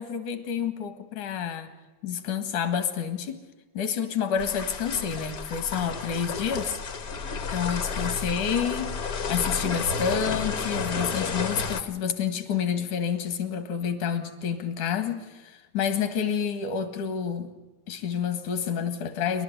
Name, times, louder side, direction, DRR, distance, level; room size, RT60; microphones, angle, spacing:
voice 1, 0.0-1.7 2.0-3.5 3.7-7.2 7.5-9.0 9.3-17.5 17.9-19.4, left 7 dB, 75° left, 10 dB, 3.2 m, -29 dB
sound 1, 4.4-11.8, left 4 dB, 60° left, 0.9 m, -31 dB
28.0 x 12.0 x 9.3 m, 1.2 s
omnidirectional pair, 3.6 m